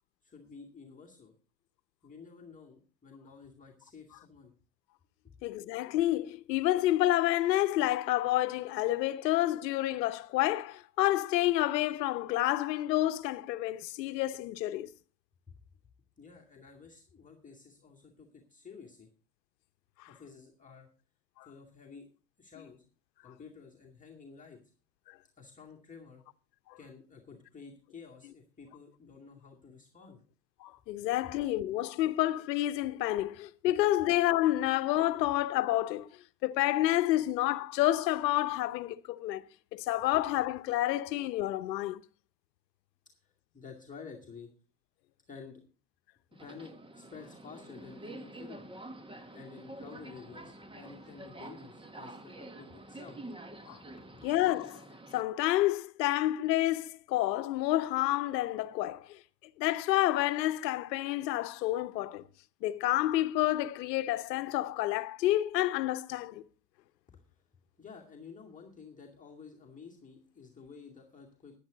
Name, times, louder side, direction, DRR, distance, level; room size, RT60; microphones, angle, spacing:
voice 1, 0.2-1.3 2.0-4.5 5.2-5.3 15.5-15.6 16.2-19.1 20.1-20.9 21.4-22.1 22.4-22.8 23.2-24.6 25.4-26.2 26.8-30.2 31.2-31.3 35.2-35.3 43.1-44.5 45.3-45.6 46.4-48.7 49.3-53.2 54.0-54.2 67.1-67.4 67.8-71.5, left 5 dB, 15° left, 2.4 m, -51 dB
voice 2, 5.4-14.9 20.0-20.1 21.4-21.5 26.7-26.8 30.6-36.1 36.4-39.4 39.7-42.0 53.7-53.8 54.2-54.8 55.1-59.2 59.6-62.2 62.6-66.4, left 15 dB, 80° left, 0.9 m, -29 dB
Subway metro underground, 46.3-55.2, right 2 dB, 10° right, 1.3 m, -48 dB
13.5 x 10.5 x 3.9 m
hypercardioid pair, 95°, 49 cm